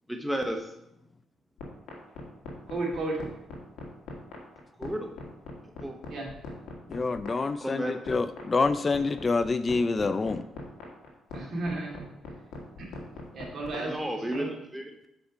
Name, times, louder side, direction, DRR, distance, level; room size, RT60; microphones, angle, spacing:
voice 1, 0.1-0.7 4.8-5.1 5.8-6.0 7.6-8.0 13.7-15.1, right 1 dB, 5° right, 3 dB, 0.7 m, -33 dB
sound 1, 1.6-14.4, left 3 dB, 85° left, 1.6 m, -41 dB
voice 2, 2.7-3.2 6.1-6.3 11.3-12.0 12.8-13.0 13.3-14.0 14.3-14.5, right 2 dB, 55° right, -1 dB, 2.4 m, -33 dB
voice 3, 6.9-10.4, left 3 dB, 30° left, 12 dB, 0.3 m, -27 dB
6.4 x 5.0 x 5.1 m, 0.83 s
cardioid pair, 90°, 0 cm